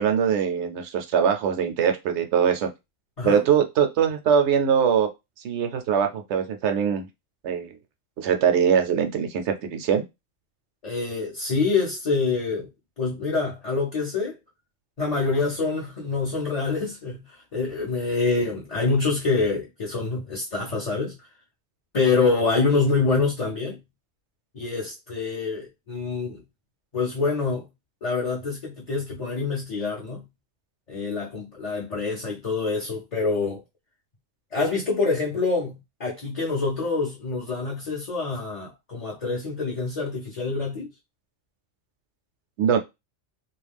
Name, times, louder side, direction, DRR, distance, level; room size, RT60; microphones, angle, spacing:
voice 1, 0.0-2.7 3.2-5.1 5.4-7.1 7.4-7.7 8.2-10.0 42.6-42.8, right 7 dB, 70° right, 0.8 m, -22 dB
voice 2, 10.8-12.7 13.0-14.4 15.0-21.3 21.9-23.8 24.5-26.4 26.9-27.7 28.0-30.3 30.9-33.6 34.5-40.9, left 4 dB, 40° left, 0.6 m, -26 dB
2.4 x 2.2 x 3.3 m
omnidirectional pair, 1.3 m